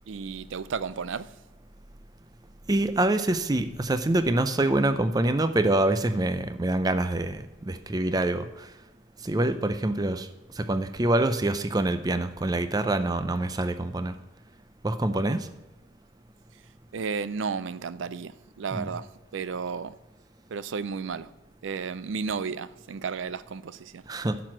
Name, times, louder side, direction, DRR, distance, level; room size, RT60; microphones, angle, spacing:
voice 1, 0.1-1.3 15.3-15.4 16.9-19.1 19.3-19.9 20.5-21.3 21.6-24.0, right 5 dB, 75° right, 16 dB, 0.4 m, -33 dB
voice 2, 2.7-8.7 9.2-10.3 10.6-14.1 14.8-15.5 18.7-18.9 24.1-24.4, right 2 dB, 20° right, 11 dB, 0.4 m, -25 dB
11.0 x 6.1 x 6.0 m, 1.1 s
head